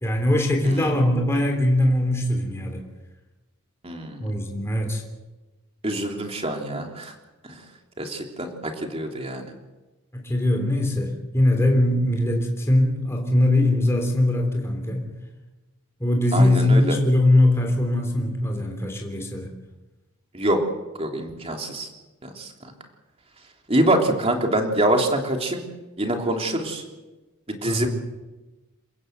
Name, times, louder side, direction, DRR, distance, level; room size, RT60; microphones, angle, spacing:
voice 1, 0.0-2.8 4.2-5.0 10.1-15.1 16.0-19.5 27.6-27.9, left 1 dB, 10° left, 2 dB, 3.4 m, -21 dB
voice 2, 3.8-4.2 5.8-7.1 8.0-9.4 16.3-16.9 20.3-20.6 21.0-21.9 22.2-22.5 23.7-25.6 26.0-26.8 27.5-27.9, right 1 dB, 25° right, 2 dB, 3.2 m, -25 dB
28.5 x 16.0 x 8.0 m, 1.1 s
head